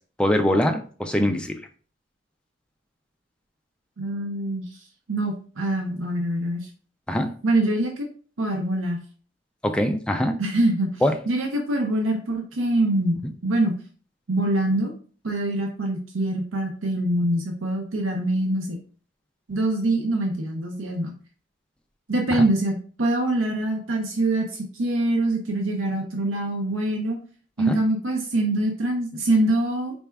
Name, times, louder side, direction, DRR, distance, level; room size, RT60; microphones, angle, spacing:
voice 1, 0.2-1.5 7.1-7.3 9.6-10.4 11.0-11.1 27.7-27.8, left 1 dB, 5° left, 4 dB, 0.3 m, -22 dB
voice 2, 4.0-4.8 5.1-6.7 7.4-8.1 8.4-9.0 10.4-13.8 14.3-14.9 15.2-18.8 19.5-21.1 22.1-27.2 27.6-29.9, right 1 dB, 85° right, 2 dB, 0.6 m, -24 dB
4.1 x 2.3 x 3.3 m, 0.41 s
head